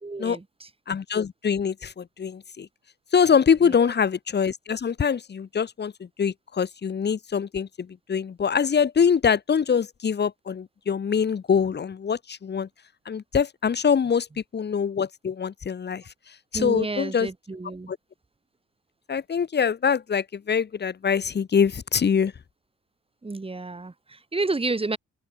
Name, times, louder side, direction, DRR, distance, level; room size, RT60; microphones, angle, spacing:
voice 1, 0.0-0.7 3.6-3.9 16.5-17.9 23.2-25.0, right 3 dB, 20° right, 3.0 m, -30 dB
voice 2, 0.9-2.7 3.1-12.7 13.1-16.0 16.5-17.3 17.9-18.0 19.1-22.3, left 6 dB, 35° left, 1.2 m, -24 dB
open air
cardioid pair, 90°, 30 cm